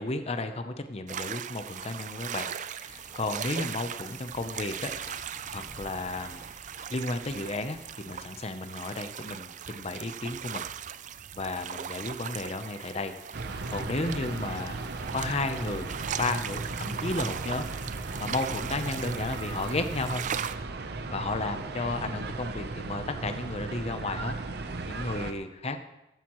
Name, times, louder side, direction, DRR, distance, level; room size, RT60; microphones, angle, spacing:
voice 1, 0.0-4.9 5.5-6.4 6.9-10.6 11.4-13.1 13.5-14.8 15.1-15.9 16.2-17.7 18.2-20.2 21.1-24.3 24.9-25.8, left 2 dB, 35° left, 8 dB, 0.7 m, -33 dB
sound 1, 1.1-20.5, right 8 dB, 45° right, 0.4 m, -39 dB
sound 2, 2.8-7.8, left 1 dB, 15° left, 1.7 m, -51 dB
sound 3, 13.3-25.3, right 3 dB, 60° right, 0.8 m, -36 dB
14.5 x 10.5 x 3.1 m, 0.92 s
head